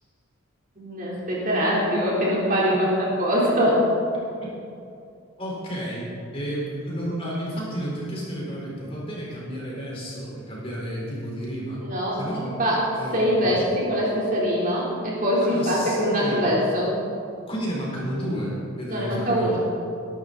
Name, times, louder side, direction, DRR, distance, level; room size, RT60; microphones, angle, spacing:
voice 1, 0.8-3.9 11.8-12.2 12.6-16.9 18.9-19.6, equal, 40° right, -5 dB, 3.8 m, -23 dB
voice 2, 5.4-11.8 12.1-12.5 13.0-13.6 15.4-16.5 17.5-19.6, equal, 25° left, -5 dB, 4.4 m, -32 dB
21.5 x 11.5 x 4.2 m, 2.5 s
head